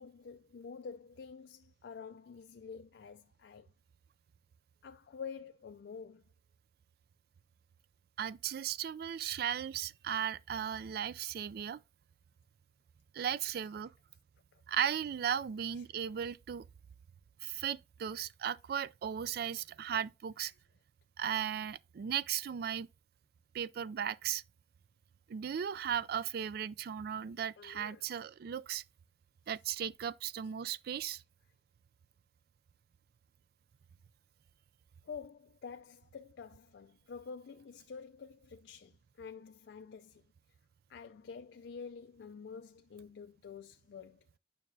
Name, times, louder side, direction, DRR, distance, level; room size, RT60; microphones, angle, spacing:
voice 1, 0.0-3.7 4.8-6.2 14.5-14.6 15.8-15.9 27.6-28.1 35.0-40.2 40.9-44.2, left 6 dB, 70° left, 0.4 m, -48 dB
voice 2, 8.2-11.8 13.1-13.9 14.7-16.6 17.4-20.5 21.2-22.9 23.5-24.4 25.3-28.8 29.5-31.2, right 9 dB, 55° right, 0.3 m, -36 dB
9.1 x 5.7 x 2.6 m
head